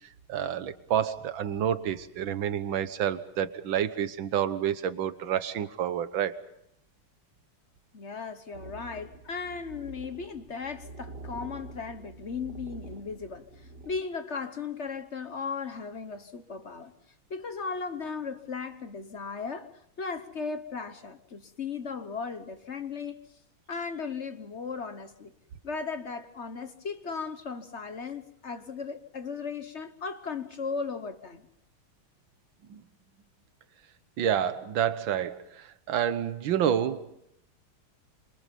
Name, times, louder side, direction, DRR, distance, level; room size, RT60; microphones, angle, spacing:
voice 1, 0.3-6.4 32.7-32.8 34.2-37.1, right 9 dB, 70° right, 1.9 m, -29 dB
voice 2, 7.9-13.4 13.8-16.9 17.3-19.7 20.0-23.2 23.7-25.3 25.6-31.5, left 5 dB, 40° left, 1.1 m, -36 dB
sound 1, 8.5-14.0, right 3 dB, 50° right, 2.4 m, -46 dB
27.0 x 27.0 x 5.3 m
omnidirectional pair, 2.2 m